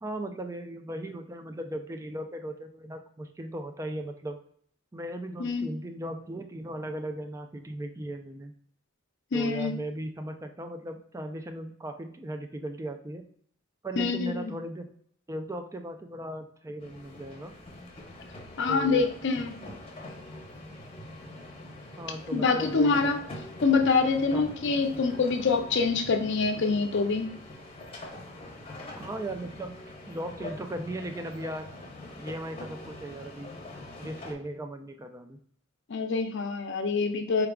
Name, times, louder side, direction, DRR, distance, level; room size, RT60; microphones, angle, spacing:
voice 1, 0.0-4.4 4.9-8.5 9.3-13.2 13.8-14.9 15.3-17.5 18.7-19.0 22.0-23.2 24.3-24.5 29.0-29.8 30.1-31.7 32.2-33.5 34.0-35.4, right 1 dB, 15° right, 7 dB, 0.3 m, -37 dB
voice 2, 9.3-9.7 14.0-14.5 18.6-19.6 22.3-23.2 23.6-27.4 35.9-37.5, left 4 dB, 60° left, 6 dB, 0.5 m, -25 dB
sound 1, 16.8-34.3, left 1 dB, 30° left, 0.8 m, -44 dB
4.6 x 3.5 x 2.3 m, 0.65 s
head